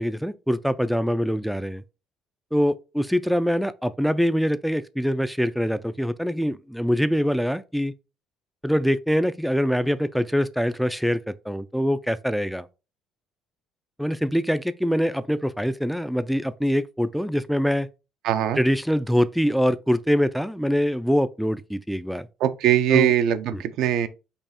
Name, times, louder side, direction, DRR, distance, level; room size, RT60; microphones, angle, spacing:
voice 1, 0.0-1.8 2.5-7.9 8.6-12.7 14.0-17.9 18.6-22.3 22.9-23.1 23.5-23.6, equal, ahead, 0.3 m, -24 dB
voice 2, 18.2-18.6 22.4-24.1, right 11 dB, 75° right, 0.5 m, -21 dB
5.4 x 2.3 x 4.1 m
cardioid pair, 95°, 0 cm